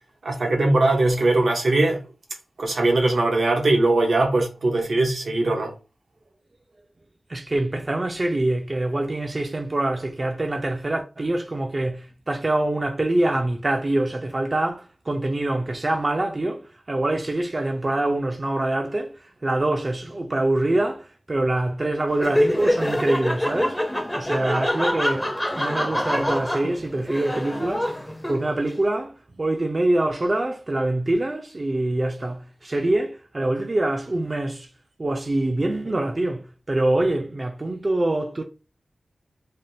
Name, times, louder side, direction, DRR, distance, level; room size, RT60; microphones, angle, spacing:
voice 1, 0.2-2.0 2.6-5.7, right 2 dB, 80° right, 0.8 m, -20 dB
voice 2, 7.3-27.9 28.3-34.7 35.0-38.4, right 2 dB, 40° right, 0.4 m, -25 dB
Laughter, 22.1-28.7, left 1 dB, 10° left, 0.5 m, -25 dB
3.4 x 2.2 x 2.7 m
wide cardioid pair, 70°, 0 cm